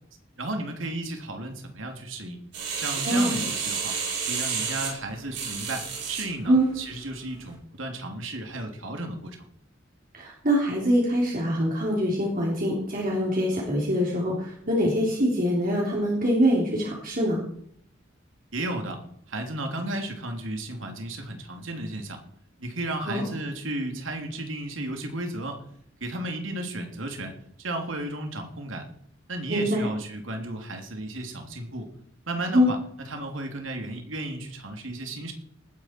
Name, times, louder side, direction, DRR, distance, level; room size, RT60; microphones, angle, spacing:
voice 1, 0.4-2.4 2.8-3.9 4.3-9.5 18.5-19.0 19.3-22.2 22.6-25.6 26.0-28.9 29.3-31.9 32.3-32.8 33.1-35.3, right 1 dB, 80° right, 4 dB, 3.0 m, -34 dB
sound 1, 2.5-6.3 6.8-6.9, right 6 dB, 60° right, 5.5 m, -30 dB
voice 2, 10.1-17.4 23.1-23.2 29.5-29.9 32.5-32.7, equal, 45° right, -3 dB, 3.5 m, -24 dB
19.0 x 10.0 x 4.6 m, 0.67 s
head